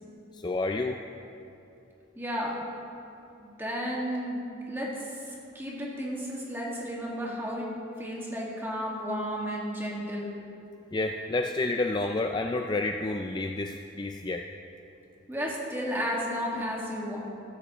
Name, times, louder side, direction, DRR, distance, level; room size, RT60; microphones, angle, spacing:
voice 1, 0.4-1.0 10.9-14.4, left 2 dB, 25° left, 4 dB, 0.3 m, -29 dB
voice 2, 2.2-2.6 3.4-7.7 8.0-10.3 15.3-17.2, equal, 10° right, -4 dB, 1.8 m, -33 dB
14.0 x 12.5 x 3.0 m, 2.8 s
head